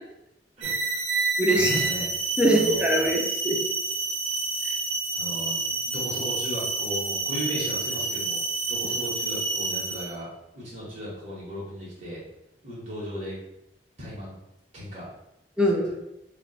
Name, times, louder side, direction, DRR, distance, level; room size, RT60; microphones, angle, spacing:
voice 1, 0.6-1.1 1.5-2.1 2.4-3.1 5.1-5.6 5.8-10.3 10.5-12.2 12.6-13.4 14.0-14.4 14.7-15.1, equal, 40° right, -8 dB, 1.0 m, -36 dB
sound 1, 0.6-10.2, right 3 dB, 90° right, 0.5 m, -29 dB
voice 2, 1.4-1.7 2.4-3.6 15.6-16.0, right 1 dB, 5° right, 0 dB, 0.5 m, -22 dB
2.6 x 2.2 x 4.0 m, 0.85 s
head